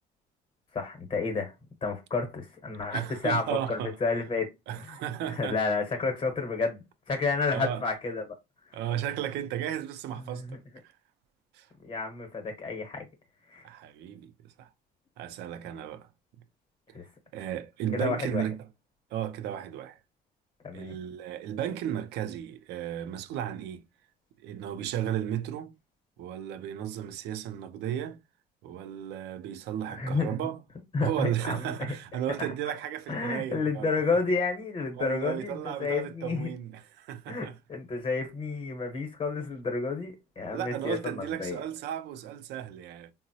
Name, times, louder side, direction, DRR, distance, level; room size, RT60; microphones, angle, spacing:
voice 1, 0.7-1.5 1.8-4.5 4.9-5.0 5.3-8.3 10.3-10.6 11.8-13.1 13.5-13.7 16.9-17.1 17.9-18.4 20.6-21.0 29.9-30.3 30.9-31.9 32.4-32.5 33.1-36.5 37.3-41.6, left 4 dB, 35° left, 0.8 m, -31 dB
voice 2, 2.9-4.0 4.7-5.6 7.5-7.8 8.7-10.9 11.5-11.7 13.6-14.7 15.2-16.1 17.3-18.6 19.1-20.0 20.7-23.8 24.4-25.8 26.2-28.2 28.6-30.6 31.0-33.9 35.0-37.6 40.5-43.1, right 10 dB, 85° right, 0.4 m, -34 dB
3.7 x 2.0 x 2.7 m
cardioid pair, 110°, 17 cm